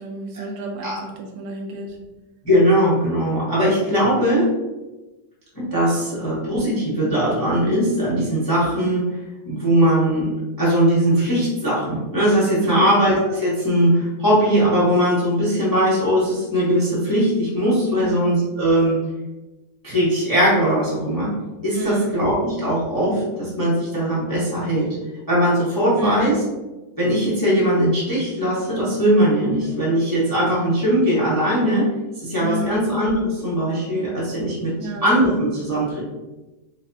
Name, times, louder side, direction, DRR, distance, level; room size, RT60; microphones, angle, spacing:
voice 1, 0.0-2.0 12.6-12.9 17.9-18.3 21.7-22.1 26.0-26.4 29.7-29.8 32.4-32.8 34.8-35.0, right 2 dB, 85° right, 2 dB, 1.3 m, -31 dB
voice 2, 2.4-4.5 5.5-9.2 9.5-19.0 19.8-21.4 21.6-24.9 25.3-26.3 27.0-31.9 32.2-34.7 35.0-36.0, equal, 20° left, -8 dB, 0.6 m, -20 dB
5.0 x 2.1 x 2.6 m, 1.1 s
omnidirectional pair, 2.0 m